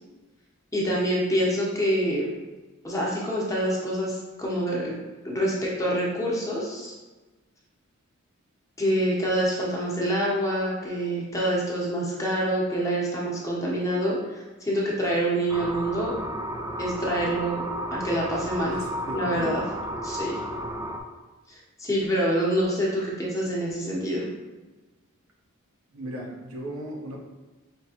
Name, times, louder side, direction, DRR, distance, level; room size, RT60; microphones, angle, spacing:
voice 1, 0.7-2.3 2.8-4.9 5.2-6.9 8.8-16.1 16.8-17.6 17.9-18.8 19.1-19.6 20.0-20.4 21.8-24.3, right 1 dB, 15° left, -4 dB, 0.9 m, -26 dB
sound 1, 15.5-21.0, right 1 dB, 15° right, 0.3 m, -33 dB
voice 2, 18.5-19.5 20.3-20.5 25.9-27.2, right 1 dB, 80° right, -1 dB, 0.9 m, -37 dB
5.2 x 3.0 x 2.9 m, 1.2 s
head